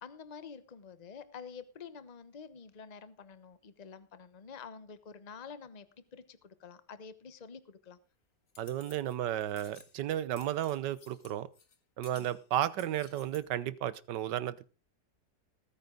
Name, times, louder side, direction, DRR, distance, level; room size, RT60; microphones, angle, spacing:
voice 1, 0.0-5.9 6.1-8.0 12.1-12.3, left 6 dB, 30° left, 0.9 m, -48 dB
sound 1, 8.5-9.2 9.4-9.9 10.4-11.8 12.0-13.4, left 5 dB, 50° left, 1.8 m, -57 dB
voice 2, 8.6-11.5 12.0-14.7, right 12 dB, 80° right, 1.5 m, -33 dB
19.0 x 9.5 x 3.9 m
omnidirectional pair, 1.8 m